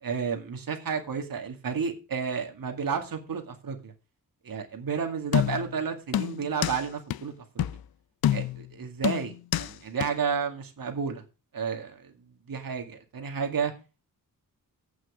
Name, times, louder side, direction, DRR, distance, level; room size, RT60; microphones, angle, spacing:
voice 1, 0.0-3.9 4.4-7.6 8.3-11.2 11.5-12.1 12.5-13.7, right 6 dB, 70° right, 2.2 m, -31 dB
sound 1, 5.3-5.8 6.1-6.8 7.1-7.2 7.6-7.8 8.2-8.7 9.0-9.7 10.0-10.1, left 12 dB, 90° left, 0.5 m, -27 dB
8.7 x 6.2 x 7.2 m
wide cardioid pair, 130°, 36 cm